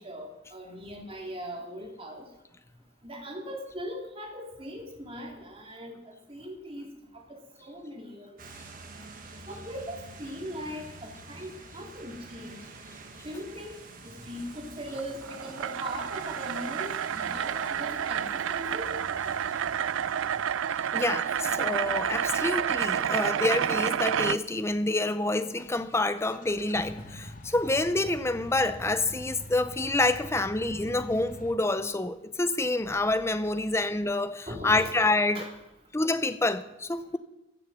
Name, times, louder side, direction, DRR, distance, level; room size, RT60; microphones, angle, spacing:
voice 1, 0.0-2.2 3.0-8.3 9.5-12.6 13.2-13.7 14.0-18.9 34.5-34.9 35.3-35.5, equal, 30° right, 2.4 m, -40 dB
sound 1, 8.4-24.0, right 3 dB, 45° right, 1.5 m, -47 dB
sound 2, 14.9-24.4, right 8 dB, 80° right, 0.4 m, -29 dB
voice 2, 20.9-35.4 35.9-37.2, left 2 dB, 15° left, 0.6 m, -27 dB
sound 3, 26.2-31.5, equal, 40° left, 1.1 m, -44 dB
14.5 x 6.8 x 7.1 m
head